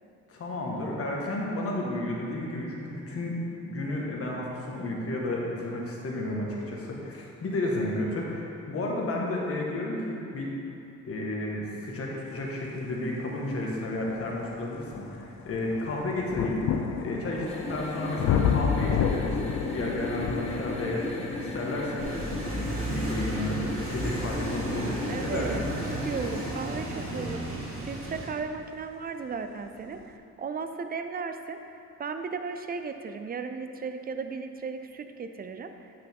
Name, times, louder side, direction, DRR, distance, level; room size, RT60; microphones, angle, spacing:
voice 1, 0.3-3.4 3.6-10.5 11.0-16.6 17.0-22.0 22.5-25.7, left 1 dB, 50° left, -3 dB, 1.5 m, -32 dB
sound 1, 13.4-13.5 14.1-28.8 29.7-29.8, left 7 dB, 65° left, 0.5 m, -33 dB
sound 2, 17.4-26.6, left 1 dB, 20° left, 1.2 m, -36 dB
sound 3, 22.0-28.3, right 1 dB, 45° right, 1.6 m, -34 dB
voice 2, 24.4-27.4 27.8-31.6 32.0-35.7, right 5 dB, 30° right, 8 dB, 0.5 m, -36 dB
8.2 x 5.6 x 3.6 m, 2.6 s
cardioid pair, 90°, 30 cm